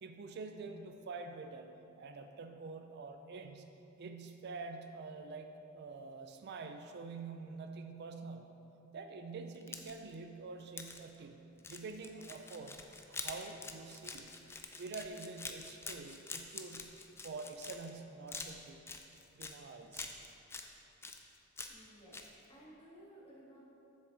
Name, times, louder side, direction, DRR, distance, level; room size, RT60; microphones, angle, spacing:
voice 1, 0.0-3.7 4.0-8.6 8.9-11.4 11.7-14.3 14.8-16.9 17.2-18.8 19.3-20.1, right 4 dB, 55° right, 6 dB, 0.4 m, -47 dB
sound 1, 9.5-10.1 10.8-11.0 11.6-18.0 18.3-19.6 19.9-20.7 21.0-21.9 22.1-22.3, left 4 dB, 10° left, 0.4 m, -46 dB
voice 2, 21.7-23.6, right 1 dB, 30° left, -7 dB, 1.8 m, -57 dB
7.2 x 6.9 x 3.9 m, 2.9 s
head